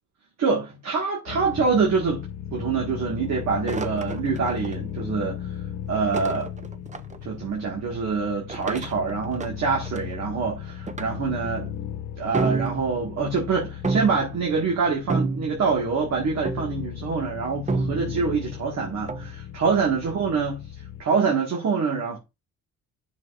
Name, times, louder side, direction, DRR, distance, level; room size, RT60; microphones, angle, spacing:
voice 1, 0.4-2.3 2.5-5.4 5.9-6.5 7.2-11.7 12.2-20.6 21.0-22.2, right 5 dB, 60° right, 1.8 m, -25 dB
sound 1, 1.3-21.0, left 10 dB, 90° left, 0.7 m, -37 dB
sound 2, 3.7-4.8 6.1-7.2 8.5-10.1 10.9-11.0 11.4-11.7 12.3-13.1 13.8-14.4 15.1-15.8 16.4-16.9 17.7-18.3 19.1-19.3, right 3 dB, 25° right, 0.6 m, -29 dB
9.5 x 6.1 x 2.5 m
cardioid pair, 90°, 30 cm